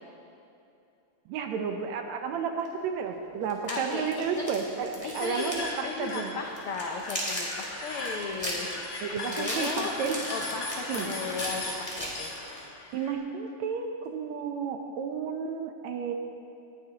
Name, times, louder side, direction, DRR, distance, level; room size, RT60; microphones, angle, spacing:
voice 1, 1.3-6.5 9.0-10.2 10.9-11.1 12.9-16.1, right 6 dB, 75° right, 5 dB, 1.9 m, -32 dB
sound 1, 2.6-2.7 3.5-5.7 6.0-6.2 6.6-12.6, equal, 15° left, 1.9 m, -36 dB
voice 2, 3.7-4.5 5.0-9.9 10.3-12.3, left 4 dB, 85° left, 1 dB, 1.2 m, -36 dB
sound 2, 5.1-13.1, left 2 dB, 65° left, 0.8 m, -38 dB
20.0 x 11.0 x 2.9 m, 2.7 s
omnidirectional pair, 3.4 m